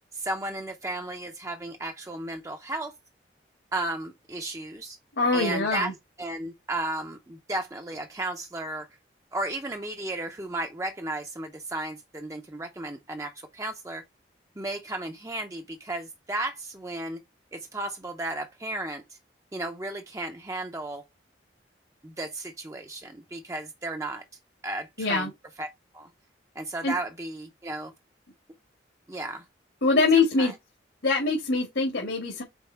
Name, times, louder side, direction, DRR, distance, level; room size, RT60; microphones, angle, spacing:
voice 1, 0.1-2.9 3.7-5.0 5.3-5.9 6.2-8.9 9.3-14.0 14.6-17.2 17.5-19.2 19.5-21.0 22.0-24.2 24.6-25.3 25.6-26.1 26.6-27.9 29.1-29.4 30.1-30.5, right 2 dB, 15° right, 0.5 m, -34 dB
voice 2, 5.2-5.9 25.0-25.3 26.8-27.0 29.8-30.5 31.0-32.4, left 3 dB, 75° left, 1.8 m, -23 dB
5.2 x 4.2 x 4.4 m
head